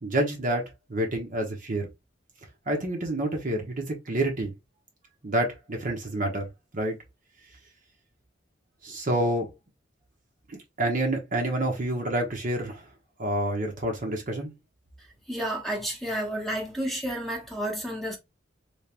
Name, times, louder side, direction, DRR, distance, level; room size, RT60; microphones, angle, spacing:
voice 1, 0.0-1.9 2.7-4.5 5.2-6.5 6.7-7.0 8.8-9.5 10.5-12.8 13.2-14.5, right 1 dB, 45° right, 1.0 m, -28 dB
voice 2, 15.3-18.2, right 1 dB, ahead, 1.0 m, -31 dB
3.4 x 3.1 x 2.9 m
head